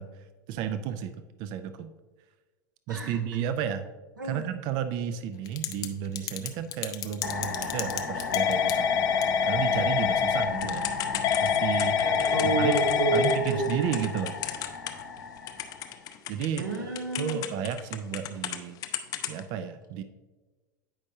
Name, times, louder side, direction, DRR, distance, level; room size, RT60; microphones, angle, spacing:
voice 1, 0.0-1.9 2.9-3.9 4.2-8.9 9.4-10.9 11.4-12.0 12.4-12.8 13.1-14.4 16.3-18.8 19.3-20.0, right 8 dB, 45° right, 10 dB, 0.4 m, -33 dB
voice 2, 2.9-3.2 4.2-4.5 12.0-13.9 16.6-17.4, right 3 dB, 80° right, 0 dB, 1.2 m, -29 dB
Typing / Telephone, 5.5-5.9 6.2-15.2 15.5-18.6 18.8-19.4, left 8 dB, 35° left, 0.5 m, -27 dB
sound 1, 7.2-16.0, left 4 dB, 80° left, 0.8 m, -34 dB
8.7 x 5.3 x 2.7 m, 1.2 s
figure-of-eight pair, 80°, 10 cm